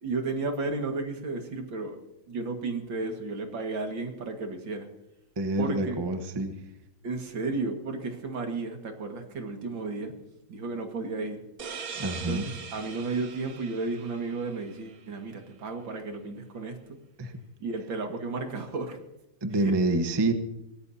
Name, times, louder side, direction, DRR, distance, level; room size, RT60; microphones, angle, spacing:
voice 1, 0.0-2.0 2.3-4.9 5.6-6.0 7.0-10.2 10.5-11.4 12.2-17.0 17.6-19.0 19.5-19.7, right 3 dB, 75° right, 4 dB, 2.6 m, -33 dB
voice 2, 5.4-6.5 12.0-12.4 17.2-17.4 19.4-20.3, right 2 dB, 20° right, 7 dB, 0.8 m, -27 dB
sound 1, 11.6-15.0, right 6 dB, 50° right, 1.5 m, -41 dB
22.5 x 17.0 x 2.8 m, 0.92 s
omnidirectional pair, 2.1 m